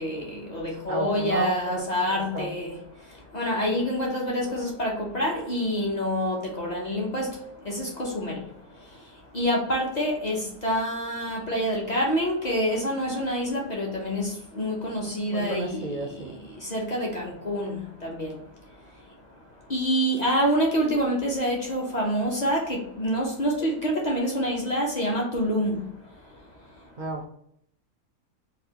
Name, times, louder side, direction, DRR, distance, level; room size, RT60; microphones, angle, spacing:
voice 1, 0.0-2.8 3.3-7.3 7.7-8.4 9.3-15.8 16.7-18.3 19.7-25.8, equal, 50° left, 0.5 m, -27 dB
voice 2, 0.9-2.5 15.3-16.4 27.0-27.3, right 2 dB, 60° right, 0.5 m, -33 dB
4.0 x 2.3 x 2.8 m
omnidirectional pair, 1.5 m